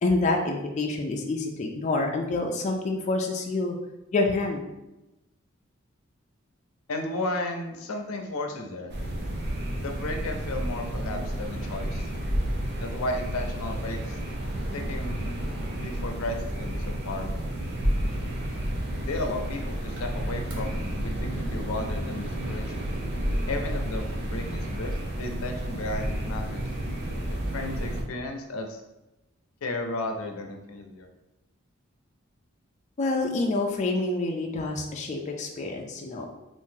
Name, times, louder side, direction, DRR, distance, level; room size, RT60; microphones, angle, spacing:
voice 1, 0.0-3.8 4.1-4.6 33.0-36.3, left 2 dB, 35° left, 1 dB, 0.4 m, -27 dB
voice 2, 6.9-8.9 9.8-12.1 12.8-14.2 14.7-15.3 15.8-17.5 19.1-22.9 23.5-24.4 24.7-26.6 27.3-28.8 29.6-31.1, left 2 dB, 85° left, 4 dB, 0.5 m, -34 dB
sound 1, 8.9-28.0, right 1 dB, 55° right, 0.6 m, -31 dB
2.7 x 2.5 x 3.7 m, 0.98 s
head